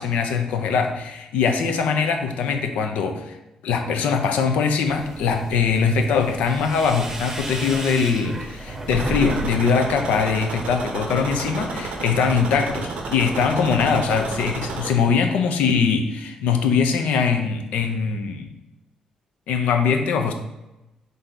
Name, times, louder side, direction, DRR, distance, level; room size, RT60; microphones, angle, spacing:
voice 1, 0.0-3.4 3.6-18.5 19.5-20.3, left 5 dB, 85° left, 5 dB, 0.5 m, -22 dB
sound 1, 4.9-9.5 9.8-10.5, right 1 dB, 20° right, 0.7 m, -33 dB
sound 2, 8.9-14.9, right 3 dB, 75° right, 0.6 m, -31 dB
3.7 x 2.7 x 4.3 m, 0.97 s
cardioid pair, 75°, 2 cm